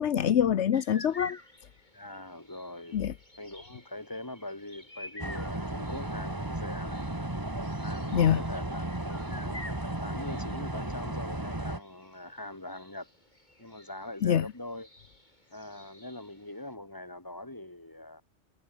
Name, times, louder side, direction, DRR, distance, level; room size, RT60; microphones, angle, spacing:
voice 1, 0.0-1.4 2.9-3.1 8.1-8.4 14.2-14.4, left 9 dB, 80° left, 1.2 m, -25 dB
sound 1, 0.7-16.7, left 1 dB, 40° left, 6.5 m, -51 dB
voice 2, 1.9-3.0 3.4-7.0 7.8-9.7 10.0-13.1 13.6-14.9 15.5-18.2, left 1 dB, 20° left, 2.8 m, -42 dB
sound 2, 5.2-11.8, right 1 dB, 20° right, 2.2 m, -34 dB
omnidirectional pair, 1.2 m